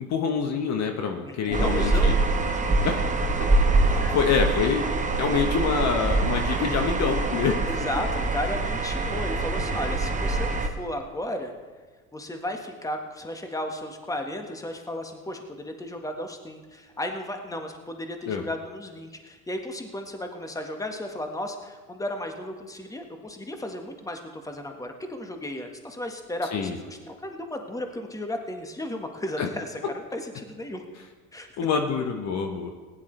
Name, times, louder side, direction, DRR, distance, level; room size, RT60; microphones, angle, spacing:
voice 1, 0.0-2.1 2.8-3.0 3.4-3.5 3.8-7.5 7.8-7.9 18.2-18.5 26.5-26.8 29.4-29.5 31.6-32.7, left 6 dB, 40° left, 4 dB, 1.3 m, -26 dB
voice 2, 1.2-2.1 3.8-4.2 7.7-11.5 12.1-30.8 31.3-31.5, left 1 dB, 10° left, 4 dB, 1.6 m, -34 dB
sound 1, 1.5-10.7, right 3 dB, 15° right, 1.4 m, -24 dB
20.0 x 10.5 x 3.4 m, 1.4 s
figure-of-eight pair, 65°, 42 cm